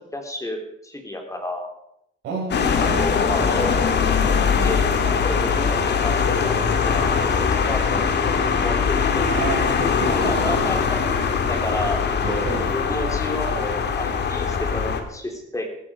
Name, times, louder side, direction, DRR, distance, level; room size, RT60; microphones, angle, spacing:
voice 1, 0.1-1.7 2.7-3.8 4.6-4.9 5.2-9.3 10.1-11.0 11.3-12.5 12.7-15.7, left 1 dB, 15° left, 3 dB, 3.5 m, -30 dB
voice 2, 2.2-3.1 4.5-4.8 9.3-10.8 12.2-13.0, right 3 dB, 90° right, -2 dB, 6.3 m, -30 dB
sound 1, 2.5-15.0, left 6 dB, 60° left, 2.2 m, -21 dB
14.5 x 14.0 x 5.1 m, 0.76 s
cardioid pair, 90°, 20 cm